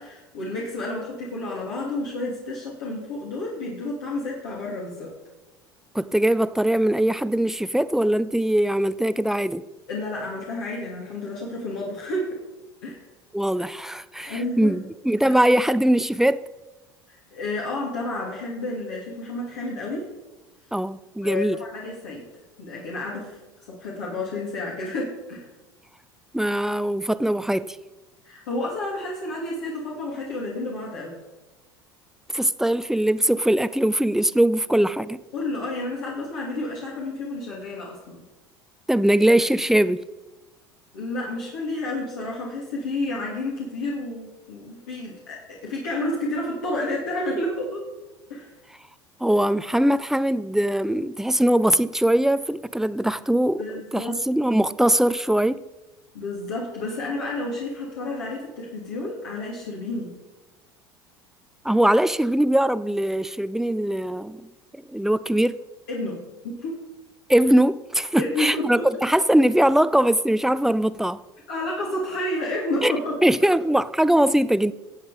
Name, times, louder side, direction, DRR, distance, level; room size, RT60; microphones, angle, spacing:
voice 1, 0.0-5.1 9.9-12.4 12.8-13.0 14.3-14.7 17.1-20.1 21.2-22.2 22.6-23.4 23.7-25.5 28.2-31.2 35.3-38.2 40.9-47.8 48.3-48.5 53.6-54.2 56.1-60.2 65.9-66.8 68.2-68.9 71.5-73.2, left 2 dB, 65° left, 2.9 m, -30 dB
voice 2, 5.9-9.7 13.3-16.4 20.7-21.6 26.3-27.8 32.3-35.2 38.9-40.0 49.2-53.6 53.9-55.6 61.6-64.4 64.7-65.6 67.3-71.2 72.8-72.9 73.2-74.7, right 1 dB, 5° right, 0.5 m, -21 dB
18.5 x 8.1 x 5.1 m
figure-of-eight pair, 70°, 12 cm